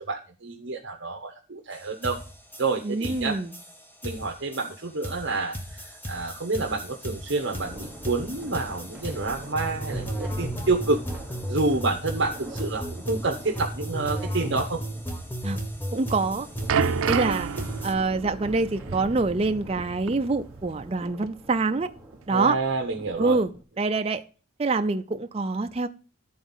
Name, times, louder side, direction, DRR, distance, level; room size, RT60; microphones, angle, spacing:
voice 1, 0.1-2.2 2.6-3.4 4.0-11.0 11.5-14.8 22.3-23.4, right 3 dB, 60° right, 1.0 m, -28 dB
sound 1, 1.7-1.8 2.0-17.9, equal, 10° left, 1.1 m, -35 dB
voice 2, 2.8-3.5 15.4-15.6 15.9-16.5 16.8-17.5 17.8-21.9 22.3-22.6 23.2-23.5 23.8-24.2 24.6-25.9, right 3 dB, 30° right, 0.4 m, -25 dB
Thunder, 7.4-23.6, right 1 dB, 10° right, 1.1 m, -44 dB
sound 2, 16.2-21.0 21.2-21.4 22.1-22.2, right 6 dB, 80° right, 0.5 m, -30 dB
11.5 x 4.0 x 5.4 m
head